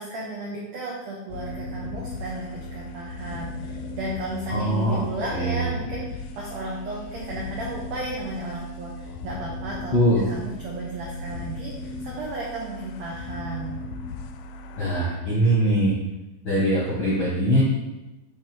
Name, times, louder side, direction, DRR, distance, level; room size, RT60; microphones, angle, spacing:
voice 1, 0.0-9.9 10.3-13.8, right 2 dB, 90° right, -4 dB, 1.5 m, -34 dB
sound 1, 1.3-15.0, left 2 dB, 85° left, 2.5 m, -37 dB
voice 2, 4.5-5.0 5.3-5.7 9.9-10.3 14.8-15.9 16.4-17.6, right 1 dB, 65° left, -7 dB, 1.2 m, -22 dB
8.0 x 3.3 x 4.5 m, 1.0 s
omnidirectional pair, 4.5 m